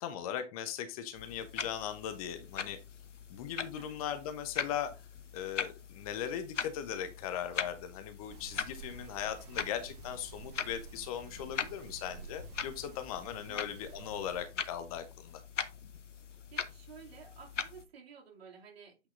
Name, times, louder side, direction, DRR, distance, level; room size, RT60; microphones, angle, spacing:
voice 1, 0.0-2.8 3.3-4.9 5.3-15.4, left 9 dB, 30° left, 0.8 m, -39 dB
sound 1, 1.1-17.9, left 6 dB, 85° left, 0.8 m, -42 dB
sound 2, 8.3-14.5, right 9 dB, 35° right, 0.5 m, -51 dB
voice 2, 16.5-19.0, right 6 dB, 55° right, 2.8 m, -52 dB
8.2 x 5.8 x 2.6 m
figure-of-eight pair, 125°, 36 cm